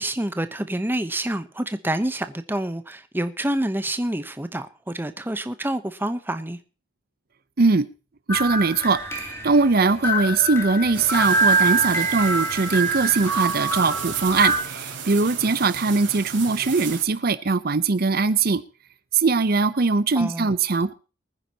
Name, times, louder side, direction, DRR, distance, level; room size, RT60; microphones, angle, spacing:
voice 1, 0.0-6.6 20.1-20.5, right 1 dB, 10° right, 0.9 m, -27 dB
sound 1, 8.3-14.6, right 3 dB, 15° left, 2.8 m, -24 dB
voice 2, 8.3-18.6 19.1-20.9, right 4 dB, 55° right, 0.7 m, -21 dB
sound 2, 10.9-17.0, right 6 dB, 85° right, 3.6 m, -35 dB
23.5 x 10.0 x 2.9 m
head